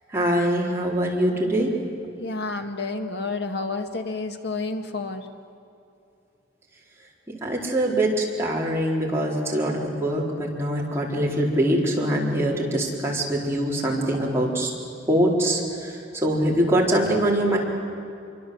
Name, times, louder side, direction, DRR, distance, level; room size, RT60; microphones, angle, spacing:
voice 1, 0.1-1.7 7.3-8.1 8.4-14.7 15.1-17.6, right 1 dB, 15° right, -4 dB, 4.5 m, -23 dB
voice 2, 2.2-5.3, left 3 dB, 65° left, 5 dB, 1.9 m, -30 dB
26.0 x 24.0 x 8.0 m, 2.6 s
head